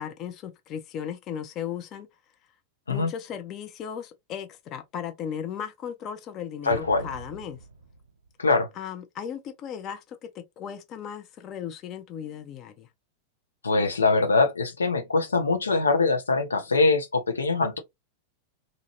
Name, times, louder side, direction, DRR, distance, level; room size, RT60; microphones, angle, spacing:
voice 1, 0.0-2.1 2.9-7.6 8.7-12.9, left 8 dB, 35° left, 0.6 m, -36 dB
voice 2, 6.6-7.0 8.4-8.7 13.6-17.8, left 3 dB, 75° left, 0.6 m, -23 dB
Explosion, 6.7-8.3, right 3 dB, 75° right, 0.5 m, -42 dB
2.7 x 2.5 x 2.9 m
figure-of-eight pair, 90°, 0 cm